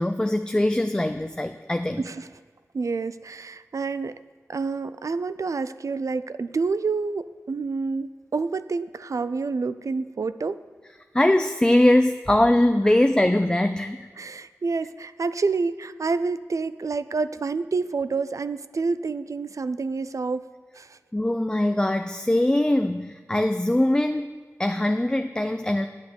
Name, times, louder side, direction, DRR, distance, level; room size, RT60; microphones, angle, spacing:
voice 1, 0.0-2.0 11.1-14.1 21.1-25.9, left 1 dB, 15° left, 8 dB, 0.4 m, -22 dB
voice 2, 2.0-2.3 2.7-4.2 4.5-10.6 14.2-20.5 20.7-21.0, right 4 dB, 70° right, 14 dB, 0.4 m, -28 dB
9.3 x 8.1 x 6.9 m, 1.5 s
wide cardioid pair, 70°, 6 cm